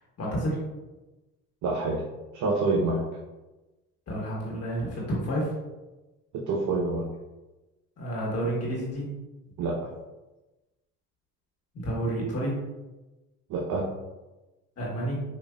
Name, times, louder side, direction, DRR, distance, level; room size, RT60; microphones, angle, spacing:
voice 1, 0.2-0.6 4.1-5.5 8.0-9.1 11.7-12.6 14.8-15.2, right 1 dB, 40° left, -5 dB, 1.3 m, -30 dB
voice 2, 1.6-2.0 2.3-3.0 6.5-7.1 9.6-9.7 13.5-13.8, right 3 dB, 55° right, -2 dB, 0.7 m, -26 dB
5.0 x 2.5 x 2.3 m, 1.1 s
supercardioid pair, 80°, 36 cm